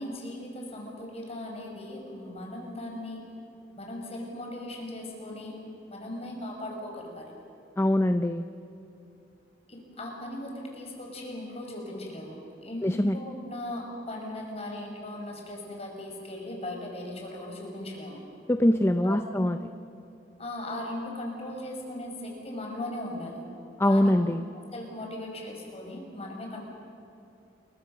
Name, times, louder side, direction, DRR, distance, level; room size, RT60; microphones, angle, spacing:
voice 1, 0.0-3.2 3.7-5.6 5.9-7.3 9.7-18.2 19.0-19.5 20.4-23.4 23.8-24.1 24.7-26.6, left 1 dB, 35° left, 1 dB, 5.7 m, -38 dB
voice 2, 7.8-8.4 12.8-13.2 18.5-19.6 23.8-24.4, left 1 dB, 15° left, 9 dB, 0.5 m, -23 dB
29.0 x 23.0 x 6.7 m, 2.8 s
head